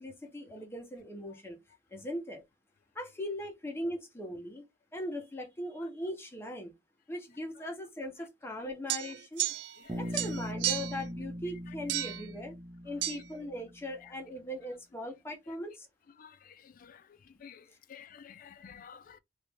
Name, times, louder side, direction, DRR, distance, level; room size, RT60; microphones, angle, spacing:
voice 1, 0.0-1.6 1.9-2.4 2.9-4.6 4.9-6.7 7.1-9.5 10.0-12.5 12.8-15.9, left 1 dB, 15° left, 0.9 m, -39 dB
sound 1, 8.9-9.9 10.1-11.0 11.9-12.3 13.0-13.2, right 13 dB, 85° right, 0.4 m, -33 dB
Bass guitar, 9.9-14.0, equal, 15° right, 0.7 m, -40 dB
voice 2, 16.2-17.0 17.4-17.6 17.9-19.2, left 7 dB, 50° left, 0.3 m, -51 dB
3.0 x 2.6 x 3.4 m
head